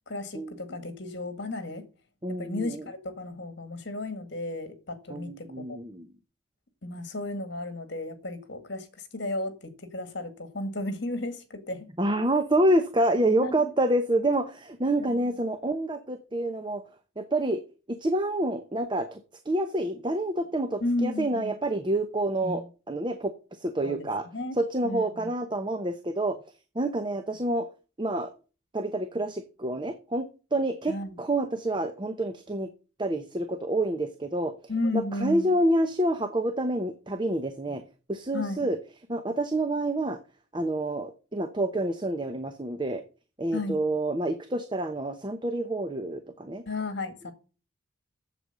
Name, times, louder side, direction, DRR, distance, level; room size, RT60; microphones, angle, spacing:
voice 1, 0.1-1.8 2.3-5.8 6.8-8.9 9.1-11.9 13.4-13.7 15.0-15.3 20.8-21.6 23.8-24.1 24.3-24.6 24.8-25.3 30.9-31.2 34.7-35.5 38.3-38.7 43.5-43.8 46.7-47.3, left 2 dB, 55° left, 1.9 m, -33 dB
voice 2, 2.2-2.8 5.1-6.1 12.0-16.8 17.2-17.6 17.9-19.2 19.4-24.3 24.6-26.4 26.7-27.7 28.0-28.3 28.7-32.7 33.0-34.5 34.9-37.8 38.1-38.8 39.1-40.2 40.5-43.0 43.4-46.6, right 1 dB, 20° right, 0.8 m, -28 dB
8.0 x 7.8 x 6.6 m
head